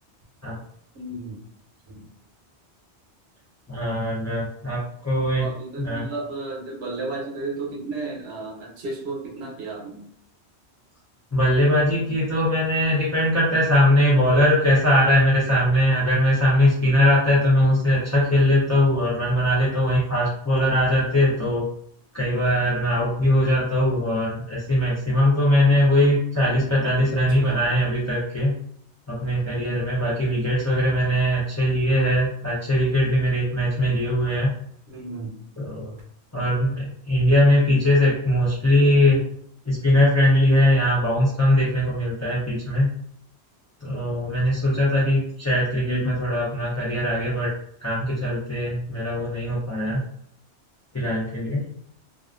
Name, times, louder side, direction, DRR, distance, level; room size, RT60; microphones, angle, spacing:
voice 1, 0.9-1.4 1.9-2.0 5.3-10.1 27.4-27.7 34.9-35.3 45.8-46.1, right 2 dB, 70° right, -1 dB, 0.9 m, -33 dB
voice 2, 3.7-5.5 5.8-6.0 11.3-21.7 22.1-28.5 29.1-34.5 35.6-35.9 36.3-39.2 39.7-42.9 43.8-47.5 47.8-50.0 50.9-51.7, left 1 dB, 25° left, -8 dB, 0.3 m, -21 dB
2.4 x 2.3 x 2.3 m, 0.65 s
omnidirectional pair, 1.2 m